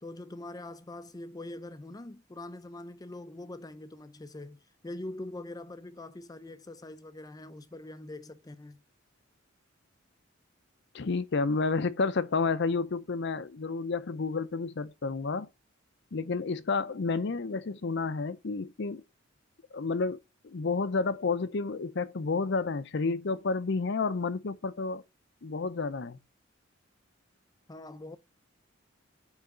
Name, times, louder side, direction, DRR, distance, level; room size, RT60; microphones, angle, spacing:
voice 1, 0.0-8.8 27.7-28.2, left 2 dB, 20° left, 0.5 m, -43 dB
voice 2, 10.9-15.5 16.1-19.0 19.7-20.2 20.4-25.0 25.4-26.2, left 4 dB, 60° left, 0.6 m, -30 dB
8.7 x 3.5 x 5.3 m
head